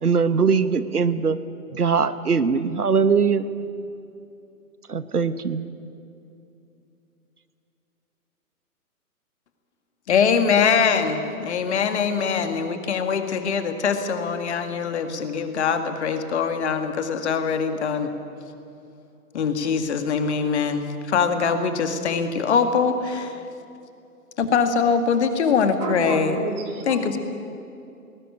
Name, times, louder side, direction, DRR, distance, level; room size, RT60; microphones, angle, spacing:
voice 1, 0.0-1.4 1.7-3.5 4.9-5.7, right 5 dB, 80° right, 13 dB, 1.2 m, -21 dB
voice 2, 10.1-18.1 19.3-23.4 24.4-26.4 26.9-27.2, left 6 dB, 45° left, 8 dB, 2.1 m, -23 dB
voice 3, 25.8-27.2, right 4 dB, 25° right, 2 dB, 3.4 m, -31 dB
19.5 x 19.0 x 9.9 m, 2.7 s
figure-of-eight pair, 125°, 45 cm